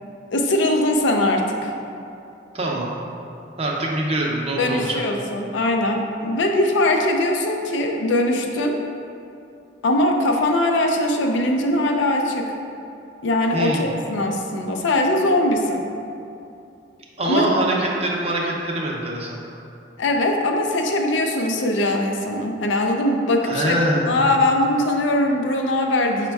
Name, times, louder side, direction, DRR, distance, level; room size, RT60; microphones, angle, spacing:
voice 1, 0.3-1.7 4.6-8.8 9.8-12.5 13.2-15.8 17.2-17.5 20.0-26.3, left 1 dB, 80° left, 3 dB, 0.4 m, -21 dB
voice 2, 2.5-2.9 3.6-5.0 13.5-13.9 17.2-19.4 23.4-24.2, right 1 dB, 35° right, -2 dB, 0.5 m, -24 dB
5.1 x 2.2 x 4.6 m, 2.7 s
head